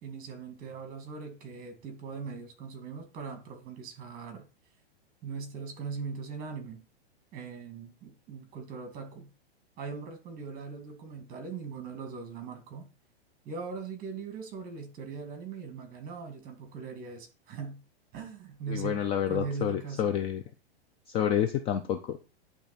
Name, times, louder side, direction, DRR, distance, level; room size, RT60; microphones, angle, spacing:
voice 1, 0.0-4.5 5.2-6.8 7.3-9.3 9.8-12.9 13.5-17.8 18.1-19.0 19.3-20.1, right 5 dB, 30° right, 2.0 m, -40 dB
voice 2, 18.7-20.4 21.1-22.2, left 9 dB, 20° left, 0.4 m, -29 dB
10.0 x 3.4 x 4.2 m
hypercardioid pair, 130°, 31 cm